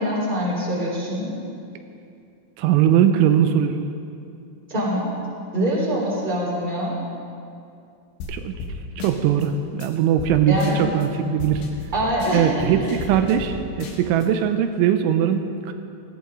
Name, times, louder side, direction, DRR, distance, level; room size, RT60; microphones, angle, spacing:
voice 1, 0.0-1.3 4.7-5.1 5.5-7.0 10.5-10.9 11.9-12.7, equal, 10° right, -6 dB, 3.5 m, -24 dB
voice 2, 2.6-3.8 8.3-8.5 9.0-11.6 12.3-15.7, right 9 dB, 85° right, 7 dB, 3.1 m, -20 dB
sound 1, 8.2-8.3 8.6-8.7 9.0-9.5 9.8-9.9 10.2-10.3 10.6-11.1 11.4-13.5 13.8-14.3, left 3 dB, 80° left, 3.9 m, -34 dB
19.0 x 15.5 x 3.8 m, 2.5 s
omnidirectional pair, 5.5 m